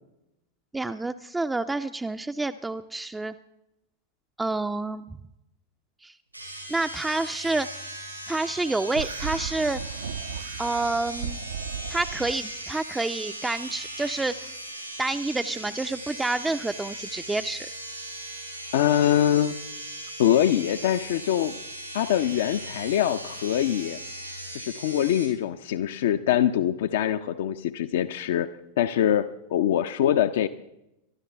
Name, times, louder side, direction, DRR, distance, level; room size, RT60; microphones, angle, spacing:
voice 1, 0.7-3.3 4.4-5.0 6.0-6.1 6.7-7.7 8.3-9.8 10.6-11.4 11.9-14.5 15.0-17.7, right 2 dB, 10° right, 8 dB, 0.4 m, -28 dB
sound 1, 6.3-25.3, right 1 dB, 90° right, 5.4 m, -38 dB
sound 2, 8.9-12.4, right 7 dB, 65° right, 0.5 m, -35 dB
voice 2, 18.7-19.6 20.2-21.5 21.9-24.0 24.5-28.5 28.8-30.5, left 11 dB, 55° left, 11 dB, 0.5 m, -23 dB
23.5 x 12.5 x 3.3 m, 0.88 s
figure-of-eight pair, 90°, 0 cm